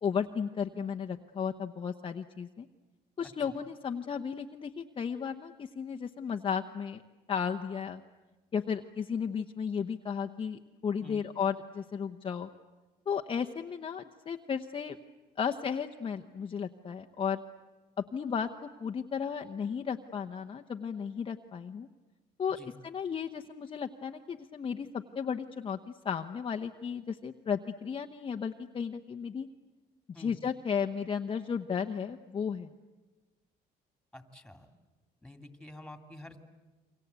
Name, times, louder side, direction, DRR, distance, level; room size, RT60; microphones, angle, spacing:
voice 1, 0.0-2.7 3.2-7.0 7.3-8.0 8.5-12.5 13.1-15.0 15.4-17.4 18.1-21.9 22.4-25.8 26.0-29.5 30.2-32.7, left 7 dB, 30° left, 4 dB, 0.9 m, -34 dB
voice 2, 3.2-3.6 11.0-11.3 22.5-22.7 30.1-30.4 34.1-34.7 35.2-36.4, left 1 dB, 5° left, 7 dB, 2.6 m, -49 dB
29.0 x 24.0 x 8.2 m, 1.2 s
cardioid pair, 110°, 17 cm